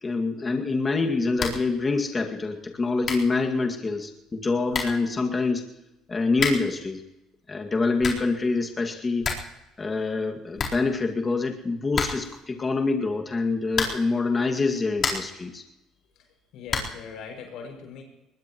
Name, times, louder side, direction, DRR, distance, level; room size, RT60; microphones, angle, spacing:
voice 1, 0.0-5.6 6.1-7.0 7.5-9.3 9.8-15.6, left 3 dB, 25° left, 3 dB, 2.1 m, -26 dB
sound 1, 1.3-1.7 2.0-2.1 2.7-2.8 3.0-3.4 4.3-4.4 4.7-5.1 6.3-6.8 7.7-8.4 8.7-8.8 9.0-9.6 9.8-9.9 10.2-10.3 10.5-11.3 11.9-12.4 13.7-14.2 14.7-15.4 16.7-17.1, left 4 dB, 40° left, 4.1 m, -30 dB
voice 2, 16.5-18.0, left 6 dB, 70° left, 2 dB, 6.5 m, -40 dB
22.0 x 20.5 x 3.1 m, 0.93 s
supercardioid pair, 85°, 0 cm